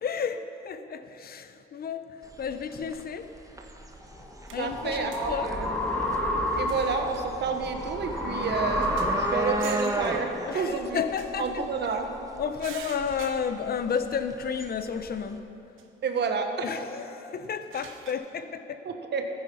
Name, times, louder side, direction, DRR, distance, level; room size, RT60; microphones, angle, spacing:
voice 1, 0.0-3.4 4.5-5.5 10.5-11.6 12.4-15.4 16.6-18.9, left 6 dB, 50° left, 10 dB, 0.8 m, -32 dB
sound 1, 2.2-15.4, right 2 dB, 15° right, 1.3 m, -36 dB
sound 2, 3.9-4.0 4.5-5.3 5.8-5.9 6.7-7.1 7.5-7.7 8.1-8.2 8.4-9.2 9.6-10.1 11.1-12.0 12.6-13.9 14.3-14.4 15.8-15.9 17.4-18.1, right 8 dB, 90° right, 1.1 m, -46 dB
sound 3, 4.1-9.9, left 1 dB, 5° left, 1.8 m, -30 dB
voice 2, 4.6-5.7 6.5-11.0 11.4-12.1 16.0-16.7 18.8-19.3, right 5 dB, 60° right, 5 dB, 1.4 m, -30 dB
14.5 x 9.8 x 5.6 m, 2.9 s
cardioid pair, 90°, 20 cm